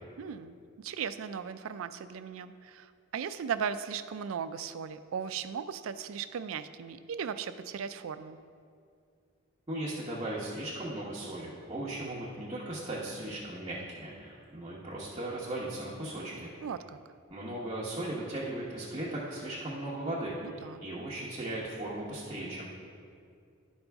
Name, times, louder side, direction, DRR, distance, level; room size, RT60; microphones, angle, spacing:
voice 1, 0.2-8.4 16.6-17.0 20.4-20.8, right 7 dB, 75° right, 12 dB, 0.4 m, -37 dB
voice 2, 9.7-16.5 17.3-22.7, right 1 dB, 20° right, -7 dB, 1.1 m, -37 dB
12.0 x 5.4 x 3.5 m, 2.3 s
head